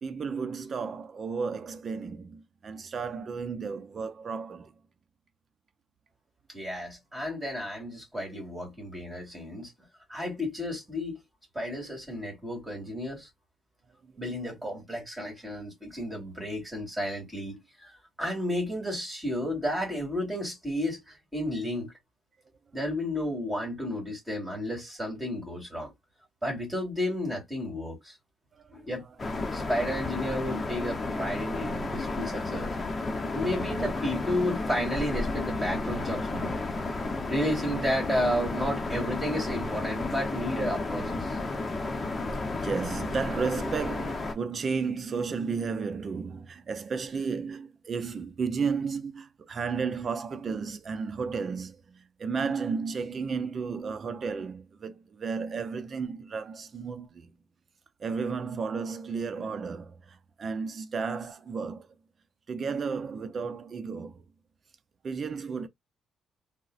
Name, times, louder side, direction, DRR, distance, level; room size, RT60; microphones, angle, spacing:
voice 1, 0.0-4.7 14.0-14.1 28.6-28.9 41.9-42.3 42.6-57.3 58.0-61.9 62.5-64.3 65.0-65.7, right 5 dB, 45° right, 0.6 m, -33 dB
voice 2, 6.5-9.7 10.1-11.2 11.5-13.3 14.2-17.9 18.2-21.9 22.7-25.9 26.4-28.2 28.7-29.1 29.5-32.7 33.0-36.6 37.3-41.4, left 1 dB, 15° right, 2.5 m, -32 dB
sound 1, 29.2-44.3, left 3 dB, 30° left, 0.8 m, -32 dB
3.7 x 2.1 x 2.4 m
cardioid pair, 90°, 0 cm